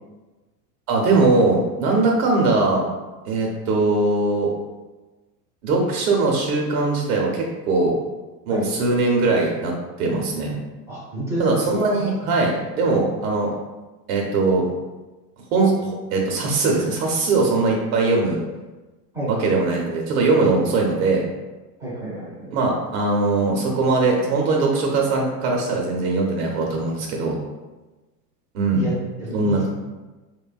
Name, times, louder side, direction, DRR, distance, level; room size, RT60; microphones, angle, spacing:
voice 1, 0.9-2.9 3.3-4.5 5.6-8.0 8.5-10.6 11.4-13.5 14.1-14.7 15.5-18.4 19.3-21.3 22.5-27.4 28.5-28.9 29.3-29.7, right 3 dB, 60° right, 0 dB, 0.6 m, -20 dB
voice 2, 10.9-11.6 12.0-12.1 19.1-19.5 21.8-22.5 28.7-28.9 29.2-29.6, right 1 dB, 5° right, -10 dB, 0.4 m, -29 dB
2.7 x 2.1 x 2.3 m, 1.2 s
supercardioid pair, 130°, 49 cm